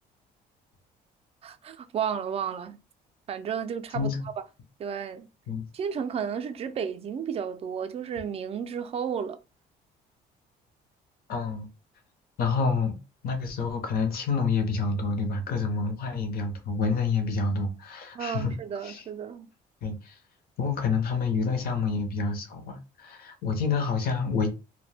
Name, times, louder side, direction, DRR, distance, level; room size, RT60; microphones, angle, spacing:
voice 1, 1.4-2.8 3.3-4.4 4.8-5.3 5.7-9.4 18.1-19.5, right 7 dB, 35° right, 0.3 m, -32 dB
voice 2, 11.3-11.7 12.4-13.0 13.2-18.5 18.8-19.0 19.8-20.1 20.6-24.5, left 4 dB, 60° left, 0.7 m, -28 dB
2.1 x 2.1 x 3.2 m
cardioid pair, 110°, 17 cm